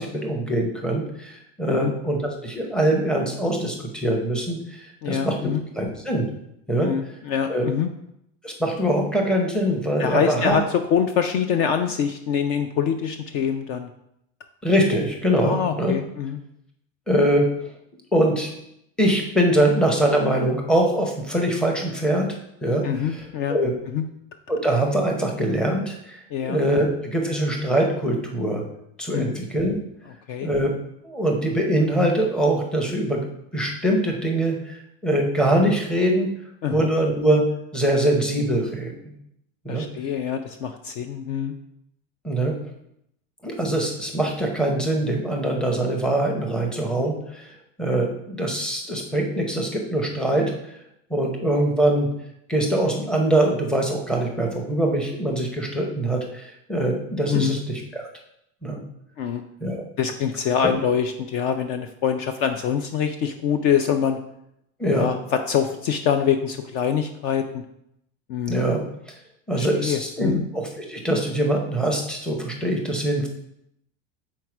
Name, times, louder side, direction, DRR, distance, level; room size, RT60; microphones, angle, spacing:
voice 1, 0.0-6.3 6.7-6.9 7.5-7.7 8.4-10.6 14.6-15.9 17.1-17.5 18.1-18.5 19.0-22.3 22.6-23.7 24.5-28.6 29.0-29.8 30.4-30.7 31.0-33.2 33.5-36.3 36.7-37.4 37.7-39.1 39.6-39.9 42.2-42.5 43.4-47.5 47.8-50.8 51.1-52.1 52.5-58.0 58.6-58.8 59.6-59.8 64.8-65.1 68.5-68.8 69.5-73.3, right 1 dB, 5° left, 1 dB, 0.6 m, -23 dB
voice 2, 5.0-5.6 6.8-7.9 10.0-13.9 15.4-16.4 22.8-23.6 23.9-24.0 26.3-26.6 29.1-29.3 30.3-30.5 36.6-36.9 39.7-41.5 57.3-57.6 59.2-59.4 60.0-64.2 64.9-67.6 68.3-68.6 69.5-70.4, left 8 dB, 45° left, 7 dB, 0.4 m, -24 dB
4.7 x 4.3 x 5.8 m, 0.78 s
supercardioid pair, 165°, 32 cm